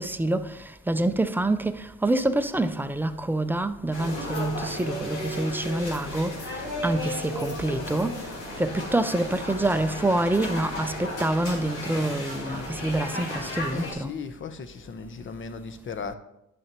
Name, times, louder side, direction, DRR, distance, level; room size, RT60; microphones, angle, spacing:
voice 1, 0.0-8.3 8.6-14.1, right 2 dB, 5° right, 0.4 m, -27 dB
sound 1, 3.9-13.9, left 1 dB, 80° left, 2.0 m, -34 dB
voice 2, 13.7-16.1, left 5 dB, 40° left, 0.8 m, -37 dB
10.5 x 6.4 x 2.9 m
cardioid pair, 90°, 30 cm